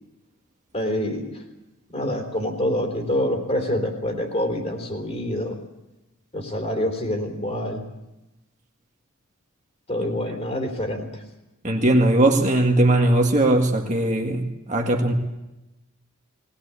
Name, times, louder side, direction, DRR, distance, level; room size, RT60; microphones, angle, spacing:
voice 1, 0.7-1.4 1.9-5.6 6.3-7.9 9.9-11.2, left 1 dB, 30° left, 3 dB, 3.7 m, -26 dB
voice 2, 11.6-15.1, right 1 dB, 35° right, 2 dB, 1.9 m, -19 dB
21.0 x 19.5 x 8.4 m, 0.97 s
head